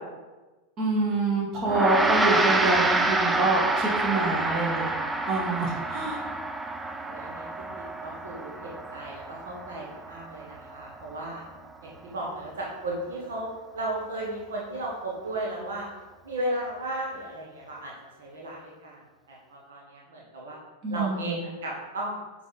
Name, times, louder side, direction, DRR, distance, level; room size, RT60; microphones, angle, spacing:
voice 1, 0.8-4.9 5.3-6.2 20.8-21.4, right 2 dB, 35° right, -2 dB, 1.8 m, -26 dB
Gong, 1.7-11.2, right 2 dB, 10° right, 0.5 m, -28 dB
voice 2, 7.1-11.4 11.8-15.9 16.2-19.0 19.3-20.6 20.9-22.2, right 1 dB, 65° right, -3 dB, 1.5 m, -35 dB
9.2 x 4.0 x 4.2 m, 1.2 s
figure-of-eight pair, 90°, 0 cm